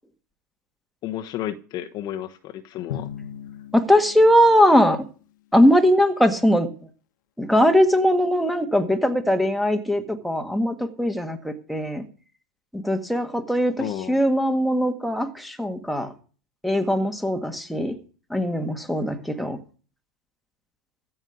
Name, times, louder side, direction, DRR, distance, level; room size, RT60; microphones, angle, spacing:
voice 1, 1.0-3.1 13.8-14.2, left 12 dB, 40° left, 1.1 m, -32 dB
Drum, 2.9-5.1, left 10 dB, 75° left, 1.4 m, -38 dB
voice 2, 3.7-5.0 5.5-6.7 7.4-12.0 12.7-13.7 14.1-16.1 16.6-18.0 18.3-19.6, equal, ahead, 1.7 m, -20 dB
14.5 x 5.5 x 9.5 m
hypercardioid pair, 110°, 10 cm